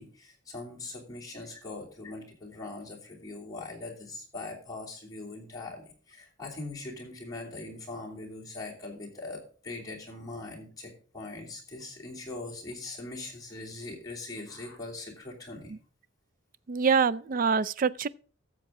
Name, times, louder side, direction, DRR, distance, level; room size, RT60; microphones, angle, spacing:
voice 1, 0.0-15.7, left 2 dB, 20° left, 2.9 m, -41 dB
voice 2, 16.7-18.1, right 5 dB, 45° right, 0.4 m, -25 dB
13.0 x 7.4 x 3.7 m
head